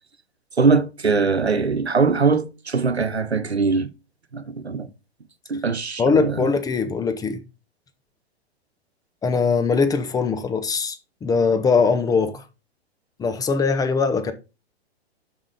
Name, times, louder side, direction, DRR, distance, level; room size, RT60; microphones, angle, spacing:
voice 1, 0.6-3.9 4.3-4.9 5.5-6.5, right 4 dB, 90° right, 0.9 m, -21 dB
voice 2, 6.0-7.4 9.2-12.4 13.2-14.3, left 4 dB, 10° left, 0.8 m, -21 dB
7.2 x 5.5 x 5.0 m
figure-of-eight pair, 110°, 32 cm